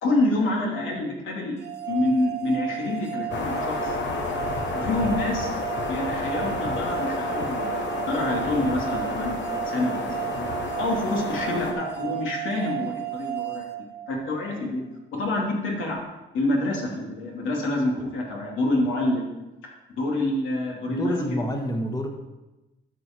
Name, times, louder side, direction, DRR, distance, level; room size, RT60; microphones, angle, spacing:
voice 1, 0.0-1.5 1.9-3.9 4.7-5.5 5.9-9.4 9.6-10.5 10.8-13.7 14.1-14.8 15.1-16.0 16.3-19.3 19.6-21.4, left 2 dB, 85° left, -1 dB, 2.5 m, -27 dB
sound 1, 1.6-14.6, right 15 dB, 55° right, 0.8 m, -33 dB
sound 2, 3.3-11.7, left 4 dB, 65° left, 1.3 m, -30 dB
voice 2, 20.8-22.1, left 1 dB, 20° left, 4 dB, 1.3 m, -28 dB
12.5 x 4.9 x 4.4 m, 1.0 s
cardioid pair, 90°, 20 cm